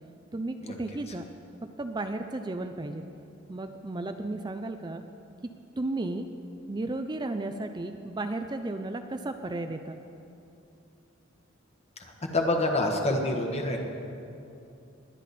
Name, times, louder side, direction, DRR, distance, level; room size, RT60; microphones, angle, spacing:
voice 1, 0.3-1.2 1.8-3.1 3.5-5.0 5.8-6.3 6.7-10.0, right 2 dB, 20° right, 7 dB, 0.5 m, -34 dB
voice 2, 12.3-13.8, left 2 dB, 35° left, 2 dB, 1.4 m, -26 dB
20.5 x 10.0 x 4.3 m, 2.7 s
head